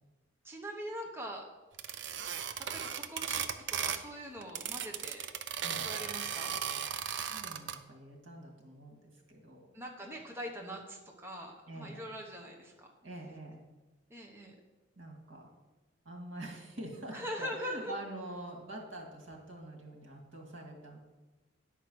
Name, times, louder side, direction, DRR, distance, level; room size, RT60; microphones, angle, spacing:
voice 1, 0.4-1.4 2.6-3.4 3.7-5.3 5.8-6.5 9.7-12.9 14.1-14.5 17.1-18.0, equal, 10° right, 0 dB, 0.9 m, -42 dB
sound 1, 1.8-4.1 4.4-7.8, right 8 dB, 65° right, 0.5 m, -36 dB
voice 2, 5.6-5.9 7.1-9.0 9.3-9.7 11.7-12.1 13.0-13.6 15.0-15.5 16.1-21.0, right 1 dB, 90° right, 2 dB, 1.8 m, -46 dB
9.9 x 4.6 x 6.1 m, 1.1 s
head